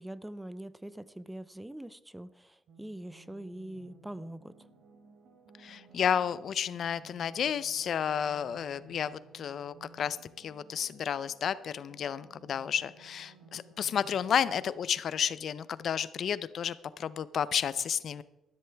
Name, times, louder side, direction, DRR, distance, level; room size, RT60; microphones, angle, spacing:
voice 1, 0.0-4.7, right 1 dB, 5° right, 16 dB, 0.6 m, -43 dB
sound 1, 2.7-14.7, right 3 dB, 70° right, 3.0 m, -57 dB
voice 2, 5.6-18.2, left 8 dB, 60° left, 17 dB, 0.5 m, -32 dB
13.5 x 12.5 x 3.5 m, 0.95 s
cardioid pair, 90°, 0 cm